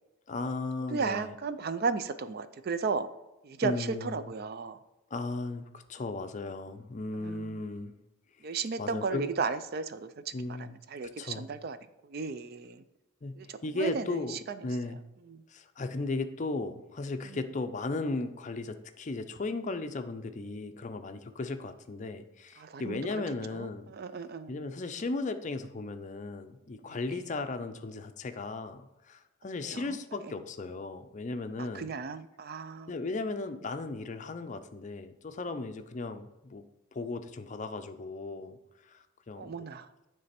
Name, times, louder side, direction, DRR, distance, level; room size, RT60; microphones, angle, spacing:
voice 1, 0.3-1.4 3.6-4.3 5.1-7.9 8.5-9.3 10.3-10.8 11.2-11.5 13.2-13.4 13.6-15.0 15.5-23.9 24.5-31.9 32.9-36.6 36.9-38.6 38.8-39.7, left 3 dB, 35° left, 9 dB, 0.4 m, -36 dB
voice 2, 0.9-3.1 3.4-4.8 7.1-7.5 8.4-11.8 12.0-12.8 13.4-14.4 15.3-15.4 17.3-17.4 22.6-23.2 23.5-24.6 26.9-27.2 29.6-30.0 30.2-30.3 31.6-32.9 39.4-39.9, right 4 dB, 50° right, 12 dB, 0.4 m, -35 dB
9.6 x 3.3 x 4.2 m, 1.0 s
head